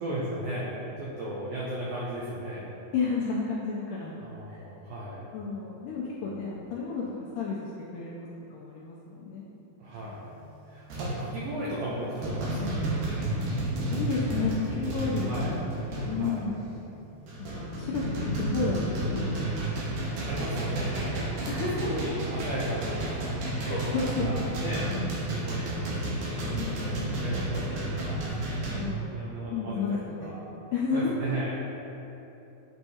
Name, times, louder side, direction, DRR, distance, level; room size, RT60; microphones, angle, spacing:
voice 1, 0.0-2.8 4.2-5.3 9.8-10.3 10.7-12.9 14.1-14.5 14.7-15.5 16.0-16.5 18.0-18.2 20.2-21.5 21.7-26.1 26.3-28.3 29.1-30.5 30.9-31.6, right 1 dB, 90° right, -6 dB, 1.6 m, -36 dB
voice 2, 2.9-4.1 4.5-4.6 5.3-7.0 7.4-8.2 8.5-9.5 13.4-13.5 13.9-15.3 16.1-16.6 17.6-18.0 18.4-18.9 19.3-20.1 21.5-21.9 23.6-24.4 25.5-25.8 26.5-27.1 28.7-29.2 29.5-30.0 30.7-31.4, left 5 dB, 85° left, -5 dB, 1.9 m, -32 dB
sound 1, 9.9-10.2 10.9-11.3 11.7-11.9 12.2-16.4 16.9-28.8, right 1 dB, 70° right, 2.4 m, -31 dB
7.8 x 4.5 x 2.8 m, 3.0 s
omnidirectional pair, 4.3 m